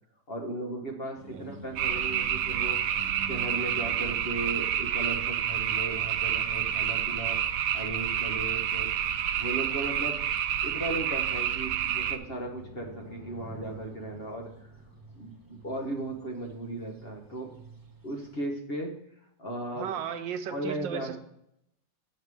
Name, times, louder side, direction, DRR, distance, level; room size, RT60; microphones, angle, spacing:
voice 1, 0.3-8.9 9.3-10.2 10.6-14.7 15.2-17.5 18.0-18.9 19.4-19.9 20.5-21.1, right 2 dB, 35° left, 2 dB, 1.3 m, -36 dB
sound 1, 1.2-18.5, right 2 dB, 25° right, 0.4 m, -51 dB
sound 2, 1.8-12.2, right 10 dB, 75° right, 1.2 m, -29 dB
sound 3, 12.3-15.9, left 3 dB, 60° left, 1.5 m, -49 dB
voice 2, 19.7-21.2, right 8 dB, 90° right, 9 dB, 1.4 m, -35 dB
7.9 x 6.6 x 4.8 m, 0.74 s
omnidirectional pair, 1.9 m